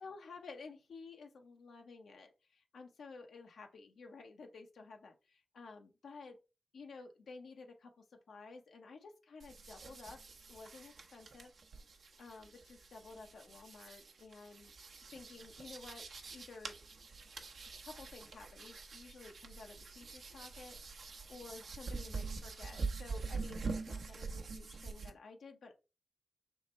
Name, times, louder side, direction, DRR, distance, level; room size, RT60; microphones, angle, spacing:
voice 1, 0.0-6.4 6.7-10.2 10.5-11.5 12.2-16.8 17.8-20.8 21.3-25.7, left 4 dB, 85° left, 4 dB, 0.8 m, -53 dB
sound 1, 9.4-25.1, right 4 dB, 75° right, 0.7 m, -45 dB
3.5 x 3.1 x 4.3 m, 0.29 s
cardioid pair, 60°, 0 cm